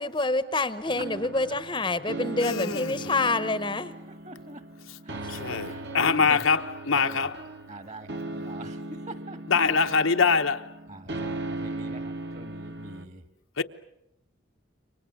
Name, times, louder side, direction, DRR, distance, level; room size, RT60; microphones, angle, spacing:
voice 1, 0.0-3.9 5.5-5.6, left 3 dB, 20° left, 1.0 m, -27 dB
sound 1, 0.9-13.1, right 2 dB, 55° right, 1.7 m, -38 dB
voice 2, 2.4-3.2 4.9-5.0 5.3-7.5 9.5-10.7 13.6-13.7, left 5 dB, 75° left, 1.1 m, -24 dB
voice 3, 4.3-4.6 5.1-5.3 5.6-6.4 6.9-7.0 7.7-8.8 9.1-9.4 10.9-12.0 12.3-13.2, right 2 dB, 35° right, 1.8 m, -44 dB
29.0 x 25.0 x 7.2 m
head